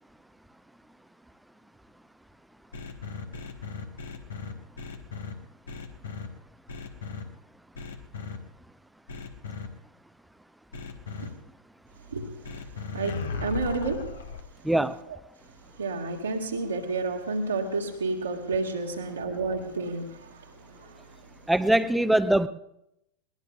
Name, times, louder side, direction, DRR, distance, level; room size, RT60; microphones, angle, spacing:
sound 1, 2.7-5.3 5.7-6.3 6.7-7.2 7.7-8.4 9.1-9.7 10.7-11.3 12.4-14.4, left 4 dB, 65° left, 1.3 m, -36 dB
voice 1, 12.9-14.1 15.1-15.2 15.8-21.5, right 3 dB, 75° right, -2 dB, 1.8 m, -31 dB
voice 2, 14.6-15.0 21.5-22.5, right 1 dB, 5° right, 14 dB, 0.6 m, -22 dB
21.5 x 19.5 x 2.4 m, 0.83 s
figure-of-eight pair, 90°, 0 cm